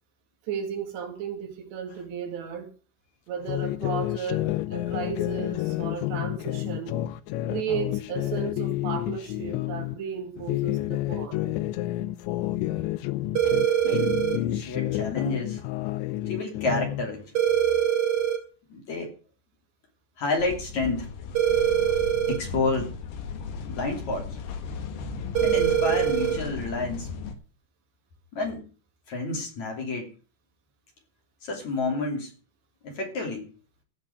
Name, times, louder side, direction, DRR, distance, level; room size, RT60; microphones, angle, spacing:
voice 1, 0.5-2.7 3.3-7.0 7.5-11.5, right 7 dB, 75° right, 4.3 m, -34 dB
sound 1, 3.5-10.0 10.4-13.7 13.9-17.1, left 16 dB, 90° left, 3.1 m, -29 dB
sound 2, 13.4-14.4 17.4-18.4 21.4-22.4 25.4-26.4, right 10 dB, 40° right, 3.1 m, -23 dB
voice 2, 13.8-14.2 14.5-15.6 16.3-17.2 18.7-19.1 20.2-21.1 22.3-22.9 23.7-24.3 25.4-27.1 28.3-28.7 29.1-30.1 31.4-32.3 32.8-33.5, left 3 dB, 45° left, 3.9 m, -29 dB
sound 3, 20.4-27.3, left 5 dB, 70° left, 3.3 m, -36 dB
16.0 x 6.0 x 7.8 m
omnidirectional pair, 5.1 m